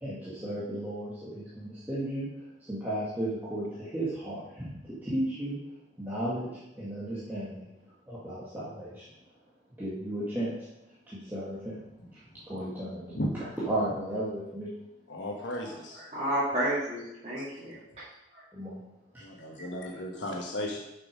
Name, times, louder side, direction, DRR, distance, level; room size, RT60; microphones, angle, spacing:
voice 1, 0.0-2.3 2.6-4.7 5.0-5.6 6.0-6.5 6.7-7.7 8.1-9.0 9.8-10.5 11.1-11.8 12.5-13.0 13.6-14.7 18.5-18.8, right 1 dB, 10° right, -10 dB, 1.7 m, -34 dB
voice 2, 15.1-16.0 17.4-17.5 19.2-20.8, left 1 dB, 80° left, -1 dB, 1.2 m, -35 dB
voice 3, 16.0-18.0 18.3-18.4, right 1 dB, 35° right, -13 dB, 2.5 m, -31 dB
6.7 x 6.1 x 5.1 m, 0.89 s
head